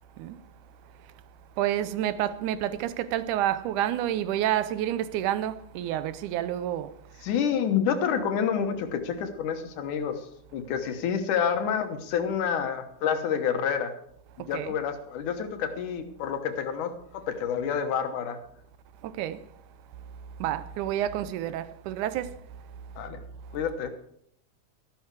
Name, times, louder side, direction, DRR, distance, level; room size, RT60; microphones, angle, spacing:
voice 1, 1.6-7.3 14.4-14.8 19.0-19.5 20.4-22.4, right 12 dB, 85° right, 2.2 m, -29 dB
voice 2, 7.2-10.2 10.5-13.9 14.4-18.4 23.0-23.2 23.5-23.9, left 7 dB, 85° left, 2.7 m, -28 dB
13.0 x 12.5 x 4.7 m
omnidirectional pair, 3.5 m